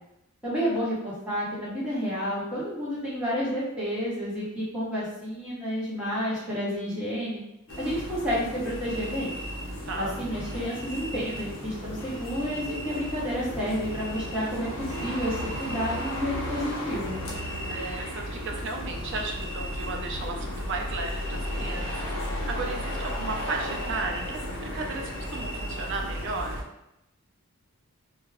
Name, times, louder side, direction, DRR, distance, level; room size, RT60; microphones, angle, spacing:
voice 1, 0.4-7.4 7.8-9.3 10.0-14.7 15.0-17.2, equal, 5° right, -10 dB, 1.0 m, -30 dB
sound 1, 7.7-26.6, equal, 65° left, 0.6 m, -34 dB
voice 2, 9.6-10.2 17.2-26.6, right 3 dB, 55° right, 2 dB, 0.4 m, -35 dB
2.3 x 2.2 x 3.3 m, 0.86 s
head